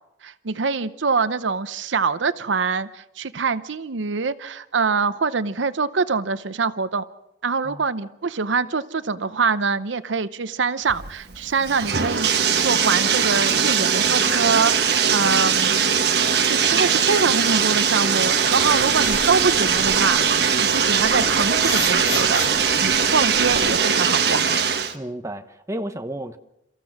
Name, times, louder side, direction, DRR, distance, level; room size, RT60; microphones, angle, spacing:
voice 1, 0.2-7.0 7.4-12.3 12.6-24.4, right 4 dB, 85° right, 14 dB, 0.8 m, -24 dB
Bathtub (filling or washing), 10.9-24.9, right 7 dB, 60° right, 1.4 m, -20 dB
sound 1, 18.6-23.6, left 3 dB, 85° left, 5.7 m, -35 dB
voice 2, 24.9-26.4, right 1 dB, 15° right, 7 dB, 0.9 m, -32 dB
30.0 x 14.5 x 6.0 m, 0.87 s
head